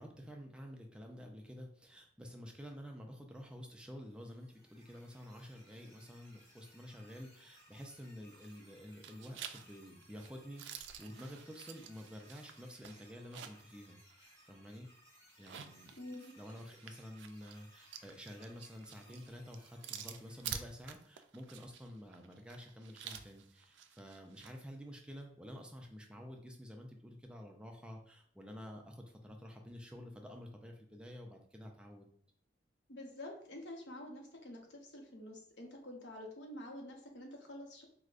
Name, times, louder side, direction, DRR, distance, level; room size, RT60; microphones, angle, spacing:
voice 1, 0.0-14.9 15.4-15.9 16.4-32.1, equal, 5° right, 2 dB, 0.3 m, -50 dB
sound 1, 4.0-20.7, equal, 15° left, 1.4 m, -64 dB
sound 2, 8.3-8.7 9.0-13.7 14.1-14.2 15.3-24.6, right 8 dB, 85° right, 0.3 m, -49 dB
voice 2, 16.0-16.3 32.9-37.8, left 1 dB, 85° left, 1 dB, 0.8 m, -48 dB
4.7 x 2.1 x 2.4 m, 0.63 s
head